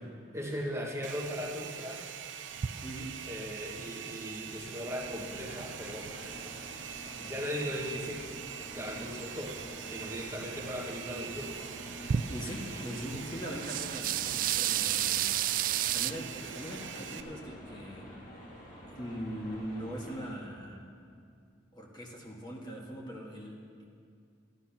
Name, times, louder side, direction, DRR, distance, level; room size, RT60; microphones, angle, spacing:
voice 1, 0.3-2.0 3.3-6.1 6.4-6.5 7.2-8.2 8.7-11.6 16.4-16.5, equal, 15° right, -2 dB, 1.4 m, -38 dB
Domestic sounds home sounds, 1.0-17.2, right 8 dB, 65° right, 0.8 m, -44 dB
sound 1, 2.6-6.3 6.6-7.6 7.9-8.0 8.4-9.8 10.2-11.4 11.7-12.8 13.1-16.1, right 10 dB, 45° right, 0.3 m, -33 dB
voice 2, 2.8-3.2 12.3-15.3 15.9-18.1 18.9-21.2 21.7-23.8, equal, 20° left, -2 dB, 1.6 m, -41 dB
sound 2, 4.8-20.4, equal, 40° left, 2.4 m, -48 dB
14.0 x 12.0 x 5.8 m, 2.3 s
head